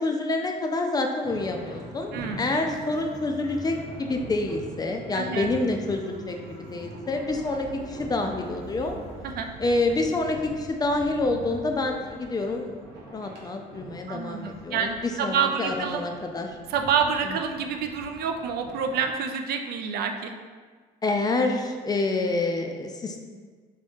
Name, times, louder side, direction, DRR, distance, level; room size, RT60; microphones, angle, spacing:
voice 1, 0.0-9.0 9.6-12.7 13.1-16.5 17.3-17.4 21.0-23.2, left 2 dB, 25° left, 3 dB, 0.3 m, -27 dB
sound 1, 1.2-19.1, right 1 dB, 85° right, 0.9 m, -43 dB
voice 2, 2.1-2.5 5.1-5.5 9.2-9.5 14.1-16.0 16.7-20.3, right 6 dB, 65° right, 5 dB, 0.4 m, -28 dB
sound 2, 7.2-12.5, right 2 dB, 15° right, 0.8 m, -45 dB
3.5 x 2.8 x 3.5 m, 1.5 s
cardioid pair, 110°, 17 cm